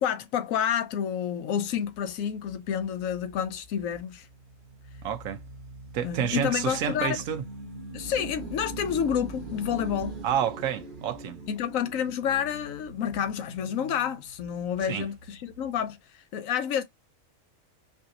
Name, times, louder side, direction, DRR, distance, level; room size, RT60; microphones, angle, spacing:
voice 1, 0.0-4.3 6.0-7.2 7.9-10.2 11.5-16.8, left 8 dB, 85° left, 1.1 m, -29 dB
sound 1, 1.7-15.9, right 2 dB, 40° right, 1.2 m, -43 dB
voice 2, 5.0-5.4 5.9-7.4 10.2-11.4 14.8-15.1, right 9 dB, 85° right, 1.1 m, -29 dB
4.9 x 2.7 x 2.5 m
omnidirectional pair, 1.4 m